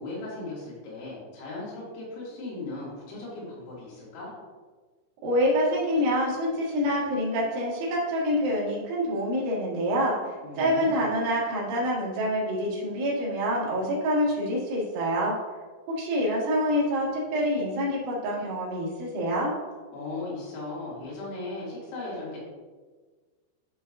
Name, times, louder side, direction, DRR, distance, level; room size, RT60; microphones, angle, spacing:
voice 1, 0.0-4.3 10.4-11.1 19.9-22.4, left 2 dB, 90° left, -7 dB, 5.3 m, -37 dB
voice 2, 5.2-10.2 10.6-15.3 15.9-19.5, equal, 70° right, -6 dB, 4.2 m, -26 dB
12.0 x 5.5 x 2.7 m, 1.4 s
omnidirectional pair, 5.9 m